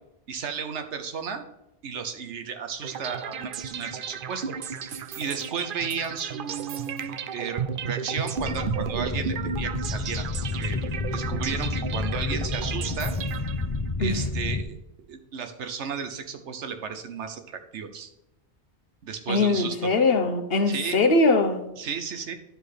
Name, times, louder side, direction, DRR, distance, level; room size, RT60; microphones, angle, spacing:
voice 1, 0.3-1.4 1.8-4.6 4.9-10.3 10.6-10.8 11.1-13.1 14.0-14.8 15.1-18.1 19.0-19.9 20.7-21.0 21.8-22.4, right 6 dB, 85° right, 8 dB, 1.2 m, -34 dB
sound 1, 2.8-13.9, right 7 dB, 60° right, 0.7 m, -34 dB
sound 2, 8.4-14.6, left 3 dB, 30° left, 0.6 m, -30 dB
voice 2, 19.3-21.6, left 3 dB, 60° left, 6 dB, 1.1 m, -21 dB
11.0 x 5.0 x 4.2 m, 0.89 s
omnidirectional pair, 1.2 m